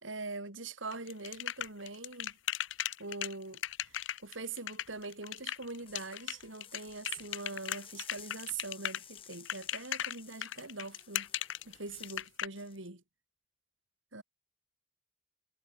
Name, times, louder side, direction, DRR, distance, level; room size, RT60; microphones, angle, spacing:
voice 1, 0.0-2.4 3.0-11.3 11.7-13.0 14.1-14.2, right 3 dB, 85° right, 4.1 m, -43 dB
sound 1, 0.9-12.5, left 11 dB, 75° left, 0.6 m, -37 dB
sound 2, 5.6-12.3 12.6-12.9, left 8 dB, 30° left, 4.3 m, -55 dB
head